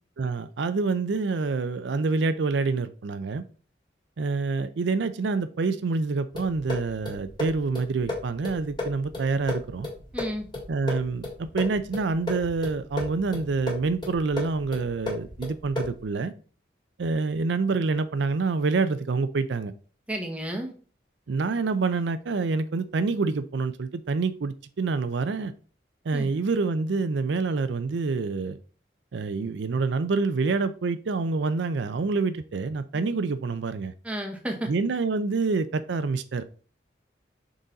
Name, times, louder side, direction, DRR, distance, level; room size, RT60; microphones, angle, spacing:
voice 1, 0.2-3.4 4.2-9.9 10.7-16.3 17.0-19.7 21.3-25.5 26.1-28.6 29.1-33.9 34.7-36.4, right 4 dB, 75° right, 12 dB, 0.4 m, -27 dB
sound 1, 6.3-16.1, left 2 dB, 25° left, 2.0 m, -35 dB
voice 2, 10.1-10.5 20.1-20.7 26.1-26.3 34.0-34.7, right 1 dB, 5° right, 1 dB, 1.0 m, -32 dB
6.3 x 4.0 x 3.9 m, 0.40 s
head